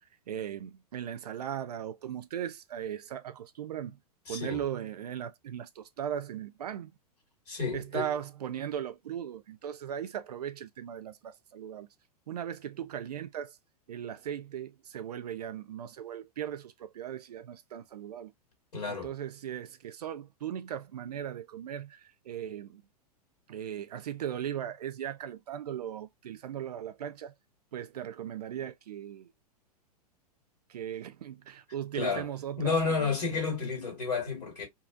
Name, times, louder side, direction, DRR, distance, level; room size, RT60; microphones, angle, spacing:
voice 1, 0.3-4.0 4.3-6.9 7.7-11.9 12.3-13.6 13.9-18.3 18.9-22.8 23.5-27.3 27.7-29.3 30.7-33.4, right 10 dB, 75° right, 0.4 m, -38 dB
voice 2, 4.3-4.6 7.5-8.1 18.7-19.1 31.9-32.3 32.6-34.7, left 4 dB, 80° left, 1.8 m, -31 dB
2.8 x 2.6 x 2.3 m
hypercardioid pair, 100°, 20 cm